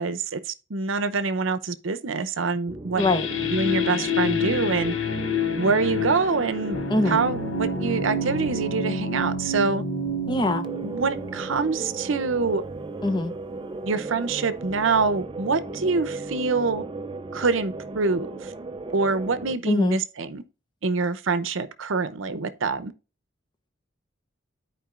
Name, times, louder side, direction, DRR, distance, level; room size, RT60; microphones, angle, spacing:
voice 1, 0.0-3.0 3.5-4.9 5.6-6.8 7.1-9.8 10.8-12.6 13.8-16.8 17.3-18.5 18.9-20.4 20.8-22.9, right 4 dB, 70° right, 0.7 m, -25 dB
sound 1, 2.7-8.7 10.6-19.6, right 3 dB, 25° right, 0.4 m, -36 dB
sound 2, 3.0-12.3, left 3 dB, 70° left, 0.8 m, -29 dB
voice 2, 3.0-3.3 6.9-7.2 10.3-10.6 13.0-13.3 19.7-20.0, left 2 dB, 20° left, 0.6 m, -22 dB
13.5 x 4.7 x 2.4 m
head